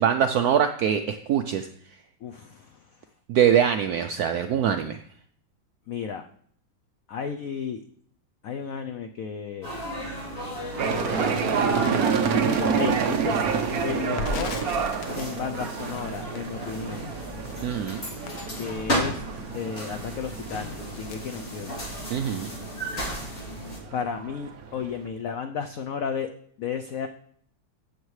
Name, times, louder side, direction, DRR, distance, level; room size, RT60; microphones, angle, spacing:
voice 1, 0.0-1.7 3.3-5.0 17.6-18.0 22.1-22.5, right 8 dB, 80° right, 8 dB, 0.8 m, -23 dB
voice 2, 2.2-2.8 5.9-6.2 7.1-7.8 8.4-9.8 10.9-11.9 12.2-13.4 13.8-14.5 15.2-17.0 18.5-19.2 19.5-21.8 23.9-26.3 26.6-27.1, left 7 dB, 85° left, 6 dB, 0.7 m, -33 dB
sound 1, 9.6-23.8, equal, 40° left, 3.2 m, -34 dB
sound 2, 10.8-25.1, right 6 dB, 55° right, 1.2 m, -29 dB
Crackle, 14.0-22.1 22.4-22.6 22.9-23.6, left 2 dB, 55° left, 1.2 m, -39 dB
15.0 x 6.7 x 3.2 m, 0.62 s
omnidirectional pair, 2.1 m